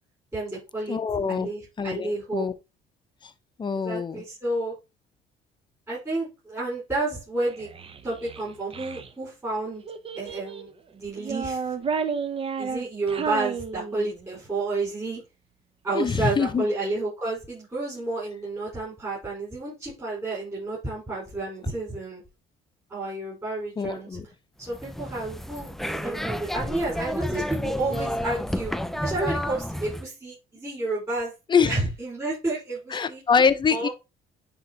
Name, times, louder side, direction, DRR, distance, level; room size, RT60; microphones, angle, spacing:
voice 1, 0.3-1.0 1.3-2.5 3.7-4.7 5.9-7.7 8.0-9.8 10.1-11.9 12.6-15.2 15.8-22.2 22.9-24.2 24.6-28.7 29.0-31.3 31.6-33.2 33.7-33.9, right 2 dB, 15° right, 4.4 m, -31 dB
voice 2, 0.9-1.5 1.8-2.5 3.2-3.3 3.6-4.2 15.9-16.6 23.8-24.2 31.5-31.8 32.9-33.9, left 6 dB, 25° left, 0.7 m, -24 dB
Child speech kid speaking, 7.4-9.1 9.9-10.7 11.2-14.3, right 6 dB, 35° right, 0.7 m, -32 dB
sound 1, 24.6-30.1, equal, ahead, 0.3 m, -31 dB
10.5 x 3.7 x 2.8 m
cardioid pair, 110°, 17 cm